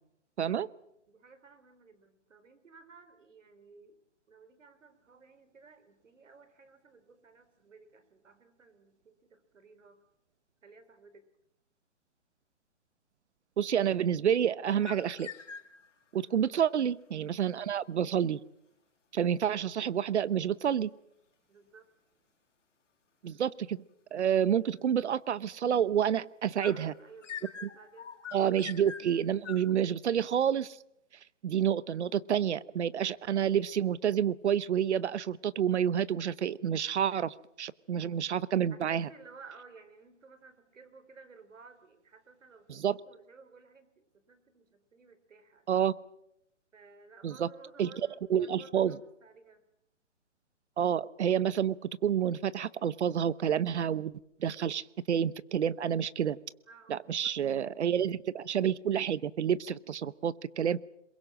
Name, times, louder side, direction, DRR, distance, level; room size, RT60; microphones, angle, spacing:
voice 1, 1.1-4.0 4.3-10.0 10.6-11.2 16.1-16.4 21.5-21.9 26.6-28.6 38.7-42.8 43.1-45.7 46.7-49.6 56.7-58.1, right 4 dB, 90° right, 11 dB, 4.0 m, -56 dB
voice 2, 13.6-15.3 16.1-18.4 19.1-20.9 23.2-23.8 24.1-26.9 28.3-30.8 31.4-39.1 42.7-43.0 45.7-45.9 47.2-47.5 47.8-47.9 48.3-49.0 50.8-51.8 52.0-54.1 54.4-56.4 56.9-60.8, right 9 dB, 65° right, 19 dB, 1.0 m, -29 dB
sound 1, 14.6-16.0 26.6-29.7, left 7 dB, 75° left, 2.4 m, -44 dB
22.5 x 22.0 x 7.5 m, 0.81 s
hypercardioid pair, 160°, 37 cm